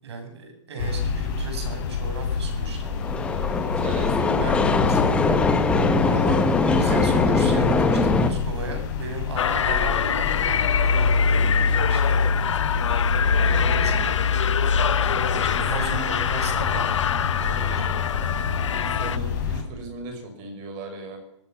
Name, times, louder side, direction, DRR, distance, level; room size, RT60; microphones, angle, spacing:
voice 1, 0.0-2.9 3.2-3.7 4.4-5.1 6.0-12.2 13.2-14.2 15.4-17.0 17.4-17.9, right 4 dB, 65° right, 5 dB, 7.9 m, -36 dB
sound 1, 0.8-19.6, left 4 dB, 40° left, 6.1 m, -26 dB
sound 2, 2.9-8.3, left 3 dB, 5° left, 1.4 m, -21 dB
voice 2, 3.8-5.0 15.0-16.2 18.5-21.2, right 2 dB, 25° right, 6 dB, 5.5 m, -37 dB
sound 3, 9.3-19.2, left 8 dB, 80° left, 1.0 m, -26 dB
23.5 x 16.0 x 7.2 m, 0.78 s
hypercardioid pair, 170°, 15 cm